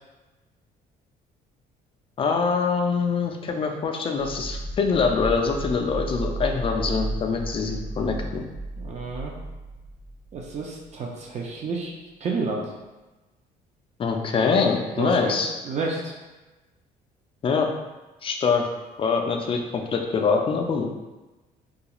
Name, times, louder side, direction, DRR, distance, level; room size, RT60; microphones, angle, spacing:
voice 1, 2.2-8.5 14.0-15.5 17.4-17.7 18.2-18.7 19.0-20.9, left 5 dB, 30° left, 3 dB, 0.3 m, -24 dB
sound 1, 4.2-10.9, right 2 dB, 60° right, 1.0 m, -34 dB
voice 2, 8.8-9.3 10.3-11.9 12.2-12.7 15.0-15.3 15.6-16.1, right 3 dB, 40° right, -1 dB, 0.5 m, -30 dB
2.3 x 2.3 x 2.9 m, 1.1 s
cardioid pair, 110°, 17 cm